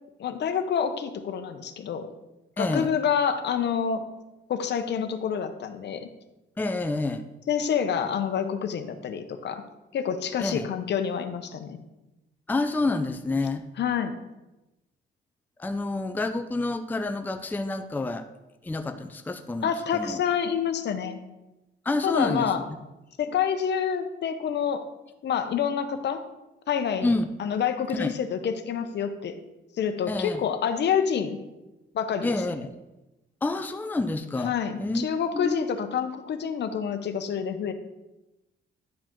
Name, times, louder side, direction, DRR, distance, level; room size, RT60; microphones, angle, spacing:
voice 1, 0.2-2.1 2.6-4.0 4.5-6.1 7.5-9.6 9.9-11.8 13.8-14.2 19.6-21.2 22.0-22.6 23.2-24.8 25.2-26.2 26.7-27.1 27.4-29.4 29.8-31.4 31.9-32.4 34.4-37.7, left 7 dB, 60° left, 9 dB, 0.8 m, -27 dB
voice 2, 2.6-2.9 6.6-7.3 10.4-10.7 12.5-13.6 15.6-18.3 18.6-20.2 21.9-22.5 27.0-27.3 27.9-28.1 30.1-30.4 32.2-32.7 33.4-34.5 34.8-35.0 35.3-35.6, left 2 dB, 10° left, 7 dB, 0.5 m, -28 dB
10.5 x 4.8 x 3.7 m, 1.0 s
cardioid pair, 90°, 20 cm